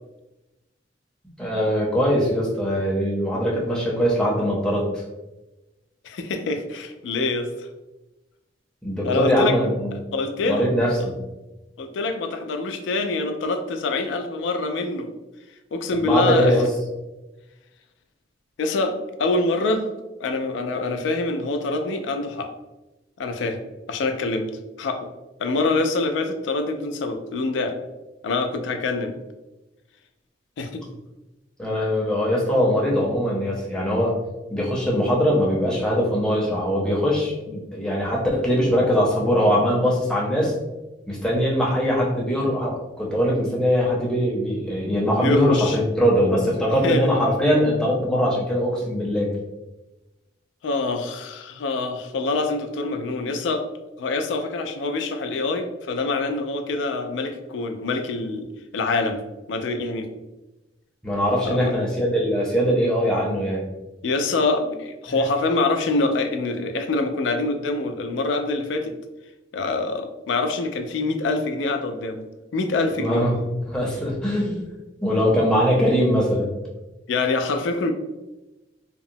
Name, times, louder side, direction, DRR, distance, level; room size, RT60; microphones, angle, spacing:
voice 1, 1.4-4.9 8.8-9.9 10.4-11.1 16.0-16.7 31.6-34.1 34.5-40.5 41.1-49.3 61.0-63.6 73.0-74.6 75.0-76.5, equal, 5° left, -4 dB, 0.6 m, -21 dB
voice 2, 6.0-7.7 9.0-9.6 10.1-10.7 11.0-11.1 11.8-15.1 15.7-16.6 18.6-19.8 20.2-22.5 23.2-23.6 23.9-24.5 24.8-25.1 25.4-27.8 28.2-29.2 30.6-30.8 45.2-45.8 46.8-47.1 50.6-53.6 54.0-59.2 59.5-60.1 61.4-61.7 64.0-68.9 69.5-72.2 72.5-73.3 77.1-77.9, left 3 dB, 80° left, 6 dB, 0.3 m, -25 dB
2.8 x 2.0 x 2.6 m, 1.0 s
head